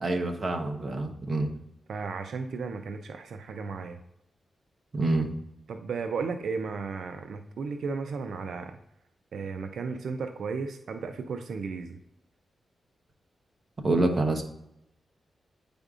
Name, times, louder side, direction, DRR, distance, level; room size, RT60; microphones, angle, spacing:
voice 1, 0.0-1.5 4.9-5.3 13.8-14.4, right 2 dB, 40° right, 3 dB, 0.9 m, -26 dB
voice 2, 1.9-4.0 5.7-8.8 9.3-12.0, right 4 dB, 80° right, 6 dB, 0.4 m, -34 dB
9.0 x 5.1 x 2.4 m, 0.82 s
wide cardioid pair, 115°, 0 cm